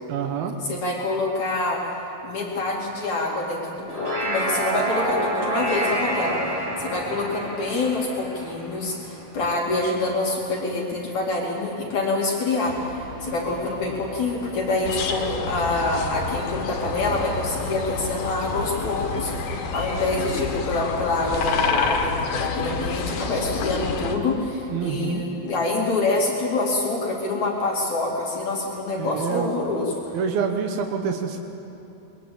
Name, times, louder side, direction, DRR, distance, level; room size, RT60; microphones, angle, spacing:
voice 1, 0.1-0.6 24.7-25.2 29.0-29.5 30.1-31.4, right 6 dB, 90° right, 3 dB, 3.1 m, -27 dB
voice 2, 0.6-1.8 2.2-29.9, left 2 dB, 55° left, -2 dB, 4.0 m, -26 dB
sound 1, 3.7-9.3, right 1 dB, 30° right, 8.0 m, -28 dB
Brass instrument, 12.7-15.7, left 1 dB, 50° right, 4.8 m, -40 dB
sound 2, 14.8-24.2, left 4 dB, 75° left, 3.5 m, -28 dB
22.0 x 22.0 x 8.8 m, 2.9 s
omnidirectional pair, 4.2 m